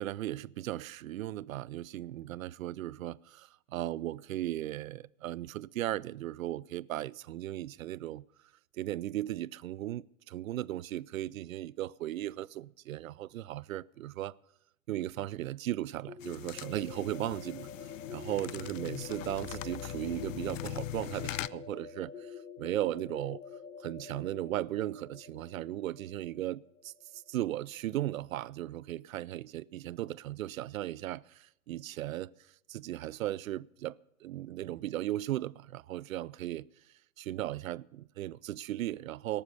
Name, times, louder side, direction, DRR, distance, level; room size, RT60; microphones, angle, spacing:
voice 1, 0.0-8.2 8.8-14.4 14.9-23.4 23.8-26.9 27.3-32.3 32.7-33.9 34.2-36.7 37.2-39.4, right 14 dB, 70° right, 0.5 m, -37 dB
sound 1, 16.1-27.8, left 6 dB, 90° left, 0.9 m, -47 dB
sound 2, 16.2-21.5, left 14 dB, 65° left, 0.5 m, -41 dB
18.5 x 7.0 x 6.8 m
hypercardioid pair, 105°, 43 cm